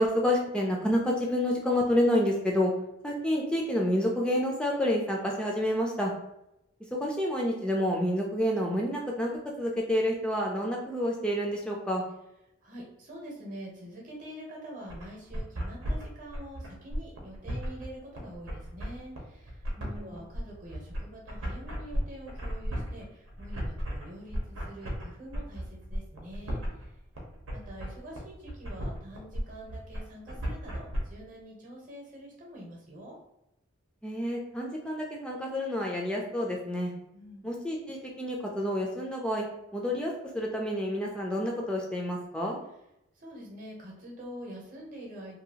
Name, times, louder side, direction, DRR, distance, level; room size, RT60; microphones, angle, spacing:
voice 1, 0.0-2.7 3.0-6.1 6.9-9.3 9.6-12.0 19.8-20.2 34.0-36.9 37.4-39.4 39.7-42.6, equal, 5° left, -1 dB, 0.3 m, -29 dB
voice 2, 12.6-19.6 19.9-26.6 27.5-33.2 37.1-37.5 43.2-45.4, equal, 40° right, -2 dB, 0.8 m, -45 dB
sound 1, 14.9-31.0, equal, 90° right, 0.8 m, -35 dB
2.7 x 2.3 x 2.8 m, 0.85 s
head